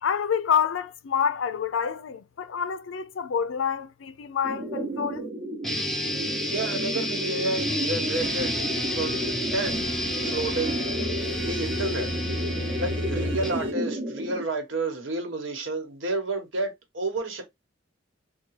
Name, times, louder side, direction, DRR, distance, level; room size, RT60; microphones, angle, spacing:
voice 1, 0.0-5.3, left 7 dB, 85° left, 0.4 m, -27 dB
sound 1, 4.4-14.4, right 1 dB, 45° right, 0.7 m, -33 dB
sound 2, 5.6-13.6, left 1 dB, ahead, 0.5 m, -30 dB
voice 2, 6.5-8.6 8.9-9.2 9.5-9.8 10.2-10.8 11.4-12.1 12.8-17.4, right 2 dB, 85° right, 1.2 m, -30 dB
sound 3, 8.1-13.7, right 2 dB, 70° right, 0.9 m, -42 dB
3.6 x 2.3 x 3.1 m
head